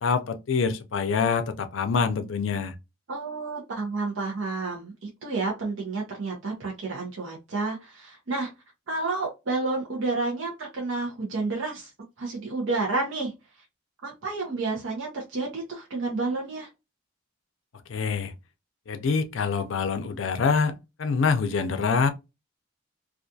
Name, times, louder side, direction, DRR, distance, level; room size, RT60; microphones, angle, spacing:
voice 1, 0.0-2.8 17.9-18.3 18.9-22.1, left 5 dB, 70° left, 0.4 m, -25 dB
voice 2, 3.1-8.5 8.9-11.9 12.2-13.3 14.0-16.7, right 3 dB, 70° right, 0.6 m, -30 dB
2.4 x 2.3 x 2.5 m
head